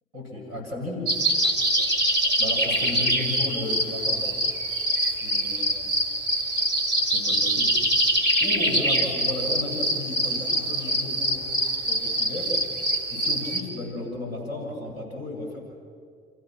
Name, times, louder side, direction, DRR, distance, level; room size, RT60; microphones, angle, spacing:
voice 1, 0.1-1.1 2.4-4.4 5.1-5.8 7.1-7.7 8.4-11.5 11.9-12.6 13.1-15.6, left 2 dB, 75° right, -4 dB, 7.0 m, -34 dB
sound 1, 1.1-13.6, right 1 dB, 35° right, 4.2 m, -24 dB
28.5 x 15.5 x 6.3 m, 2.2 s
figure-of-eight pair, 45°, 31 cm